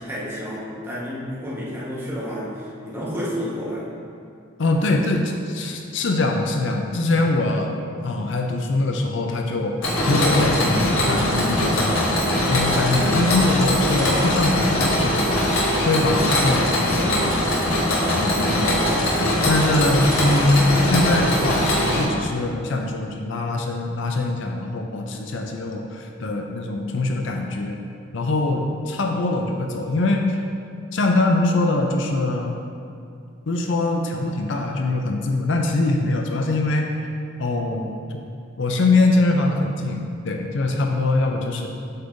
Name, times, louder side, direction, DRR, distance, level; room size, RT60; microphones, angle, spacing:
voice 1, 0.0-3.9 18.5-19.0, equal, 10° right, -8 dB, 1.2 m, -30 dB
voice 2, 4.6-7.7 8.0-9.8 10.0-12.0 12.5-15.4 15.8-17.2 18.1-19.0 19.5-27.8 28.1-30.4 30.9-32.6 33.5-36.9 37.4-37.9 38.1-38.2 38.6-41.7, left 2 dB, 60° left, 2 dB, 0.5 m, -22 dB
Mechanisms, 9.8-22.0, left 1 dB, 90° left, 1.3 m, -21 dB
7.8 x 5.3 x 2.6 m, 2.4 s
head